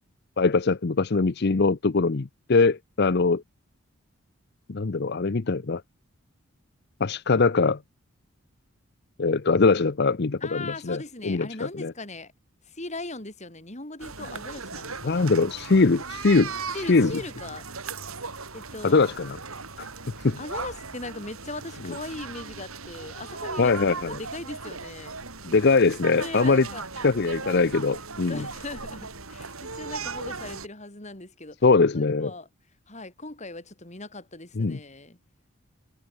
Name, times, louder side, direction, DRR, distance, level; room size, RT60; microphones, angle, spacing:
voice 1, 0.4-3.4 4.7-5.8 7.0-7.8 9.2-11.9 15.0-16.5 16.9-17.1 18.8-19.4 20.2-20.4 23.6-23.9 25.4-26.7 27.0-28.4 31.6-32.3 34.6-34.8, left 4 dB, 50° left, 0.6 m, -22 dB
voice 2, 10.4-12.3 12.6-15.3 16.7-17.7 18.5-19.1 20.4-23.8 24.0-25.2 26.1-26.8 28.3-31.6 31.9-32.5 32.9-35.2, left 2 dB, 35° left, 3.7 m, -39 dB
sound 1, 14.0-30.7, right 4 dB, 80° right, 6.1 m, -37 dB
head